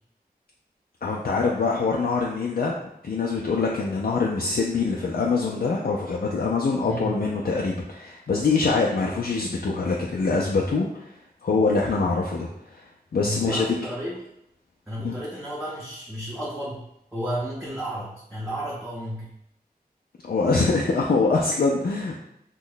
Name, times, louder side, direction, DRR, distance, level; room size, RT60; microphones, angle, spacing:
voice 1, 1.0-2.7 3.0-13.7 15.0-15.1 20.2-22.1, left 4 dB, 70° left, -2 dB, 0.4 m, -24 dB
voice 2, 13.2-14.2 14.9-16.8 17.1-19.3, equal, 5° right, -7 dB, 0.7 m, -32 dB
3.0 x 2.1 x 3.8 m, 0.80 s
wide cardioid pair, 55°, 16 cm